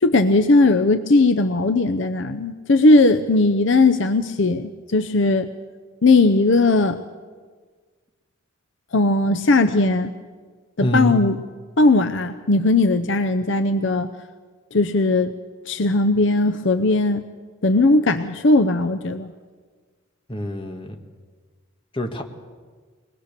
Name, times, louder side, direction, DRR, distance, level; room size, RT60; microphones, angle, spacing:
voice 1, 0.0-5.5 6.0-7.0 8.9-10.1 10.8-11.3 11.8-14.1 14.7-15.3 15.7-17.2 17.6-19.3, left 2 dB, 60° left, 8 dB, 0.7 m, -18 dB
voice 2, 10.8-11.2 20.3-21.0 21.9-22.2, equal, 25° left, 3 dB, 1.6 m, -25 dB
22.5 x 20.0 x 6.8 m, 1.5 s
head